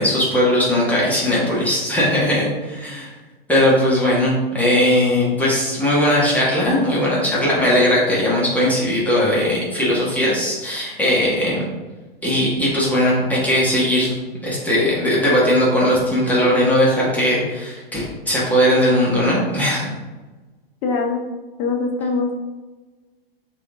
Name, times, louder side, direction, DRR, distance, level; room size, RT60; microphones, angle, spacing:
voice 1, 0.0-3.1 3.5-11.6 12.2-14.1 14.4-19.9, left 1 dB, 5° left, -7 dB, 1.0 m, -18 dB
voice 2, 20.8-21.2 21.6-22.3, left 4 dB, 35° left, 2 dB, 0.7 m, -22 dB
3.5 x 2.5 x 3.5 m, 1.2 s
figure-of-eight pair, 105°, 30 cm